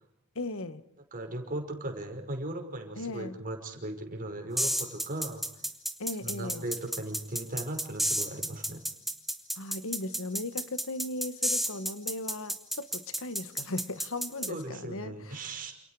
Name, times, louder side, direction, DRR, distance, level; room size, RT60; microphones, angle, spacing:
voice 1, 0.3-0.8 3.0-3.4 6.0-6.6 9.6-15.5, left 2 dB, 65° left, 1.5 m, -37 dB
voice 2, 1.1-5.5 6.2-8.8 14.4-15.7, right 1 dB, 40° right, 5.6 m, -37 dB
sound 1, 4.6-14.5, equal, ahead, 2.3 m, -31 dB
29.5 x 29.0 x 4.9 m
head